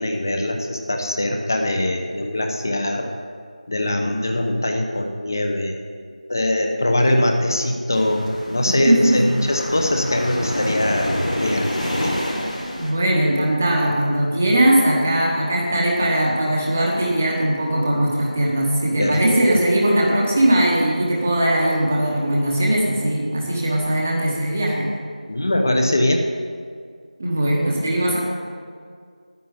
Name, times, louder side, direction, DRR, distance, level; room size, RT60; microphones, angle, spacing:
voice 1, 0.0-3.1 3.7-5.7 6.3-12.2 19.0-19.2 19.5-19.6 25.3-26.2, left 1 dB, 25° left, 4 dB, 0.9 m, -22 dB
sound 1, 7.9-12.9, equal, 80° left, 3.1 m, -27 dB
voice 2, 8.7-9.2 12.3-12.5 12.7-24.9 27.2-28.2, right 1 dB, 15° right, -3 dB, 1.0 m, -19 dB
9.4 x 8.2 x 7.9 m, 2.1 s
figure-of-eight pair, 175°, 4 cm